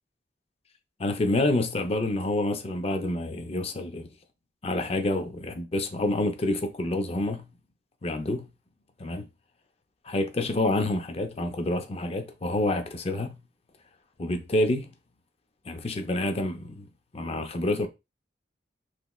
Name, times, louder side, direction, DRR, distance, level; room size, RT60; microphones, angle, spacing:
voice 1, 1.0-4.1 4.6-7.5 8.0-8.5 9.0-9.3 10.0-13.4 14.2-14.9 15.7-17.9, left 1 dB, 35° left, 0.5 m, -28 dB
3.3 x 3.0 x 2.3 m
head